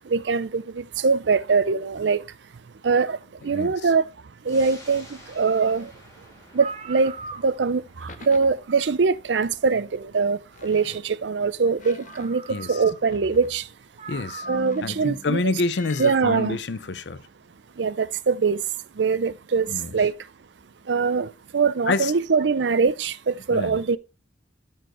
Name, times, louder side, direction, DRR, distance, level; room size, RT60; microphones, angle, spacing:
voice 1, 0.1-2.2 2.8-3.2 3.4-4.1 4.5-5.1 5.3-5.9 6.5-7.2 7.4-13.7 14.5-15.4 16.0-16.6 17.8-18.6 19.0-20.1 20.9-24.0, right 5 dB, 90° right, 0.5 m, -23 dB
voice 2, 3.5-3.9 12.5-12.8 14.1-14.5 14.8-17.2 19.7-19.9 21.9-22.1 23.5-23.8, left 3 dB, 80° left, 0.6 m, -27 dB
sound 1, 4.5-15.4 15.8-15.9, left 1 dB, 20° left, 3.1 m, -53 dB
sound 2, 6.1-6.2 6.5-7.9 9.3-9.4 11.6-11.7 12.0-13.2 13.5-13.6 14.0-14.9 16.0-16.6, right 4 dB, 35° right, 0.7 m, -40 dB
sound 3, 8.0-8.6 9.3-9.8 10.5-11.2 11.8-12.6 13.0-13.7 14.4-16.3, left 3 dB, 45° left, 0.7 m, -44 dB
13.0 x 4.5 x 3.0 m
head